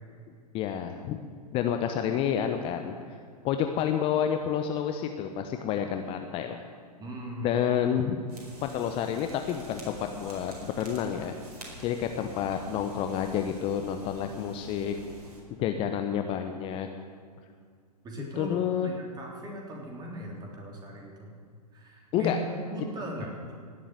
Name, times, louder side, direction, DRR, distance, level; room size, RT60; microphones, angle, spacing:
voice 1, 0.5-1.2 1.5-2.9 3.4-6.6 7.4-8.2 8.6-11.3 11.8-15.0 15.6-16.9 18.2-18.9 22.1-22.4, left 9 dB, 25° left, 6 dB, 0.9 m, -29 dB
voice 2, 7.0-7.6 18.0-18.6 18.8-21.4 21.7-23.5, equal, 20° right, 0 dB, 3.5 m, -38 dB
sound 1, 8.3-15.4, equal, 70° right, 4.7 m, -47 dB
17.5 x 7.4 x 9.4 m, 2.2 s
figure-of-eight pair, 110°, 21 cm